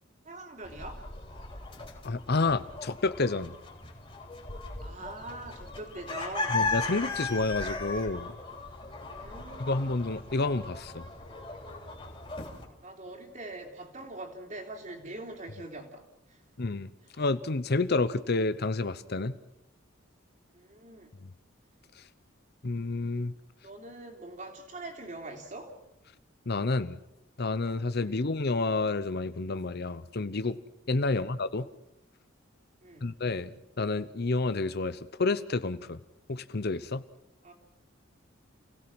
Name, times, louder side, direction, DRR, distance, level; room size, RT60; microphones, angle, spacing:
voice 1, 0.2-1.1 4.8-6.6 9.1-9.9 12.8-16.4 17.0-17.1 20.5-21.1 23.6-25.8 28.0-28.2 31.0-31.3 32.8-33.2 37.4-37.5, right 2 dB, 40° right, 2 dB, 3.4 m, -43 dB
sound 1, 0.6-12.7, left 3 dB, 25° left, 3.6 m, -37 dB
voice 2, 2.0-3.5 6.5-8.3 9.6-11.1 16.6-16.9 17.2-19.4 22.6-23.3 26.5-27.0 27.4-30.6 30.9-31.7 33.0-36.0 36.3-37.0, left 3 dB, 55° left, 14 dB, 0.8 m, -29 dB
29.0 x 17.0 x 6.2 m, 0.91 s
head